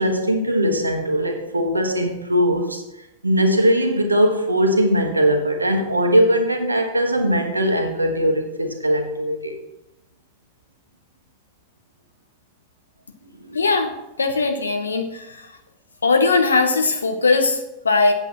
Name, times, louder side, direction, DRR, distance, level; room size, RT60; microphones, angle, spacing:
voice 1, 0.0-2.8 3.2-9.5 13.4-13.6, equal, 80° right, 1.2 m, -20 dB
voice 2, 13.5-15.5 16.0-18.1, left 3 dB, 75° left, 1.0 m, -20 dB
8.2 x 8.0 x 4.3 m
figure-of-eight pair, 90°, 0 cm